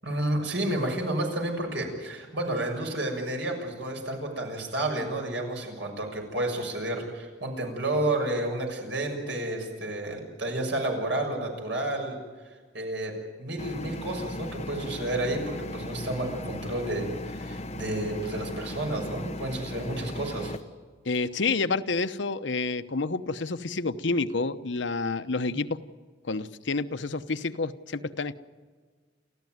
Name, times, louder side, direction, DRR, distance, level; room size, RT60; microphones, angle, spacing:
voice 1, 0.0-12.2 12.7-13.1 13.4-20.5 25.5-25.6, right 1 dB, 75° right, 2 dB, 6.7 m, -31 dB
sound 1, 13.6-20.6, left 1 dB, 35° left, 0.9 m, -37 dB
voice 2, 21.0-25.8 26.2-28.3, left 3 dB, 75° left, 11 dB, 0.9 m, -29 dB
29.5 x 14.5 x 9.4 m, 1.5 s
head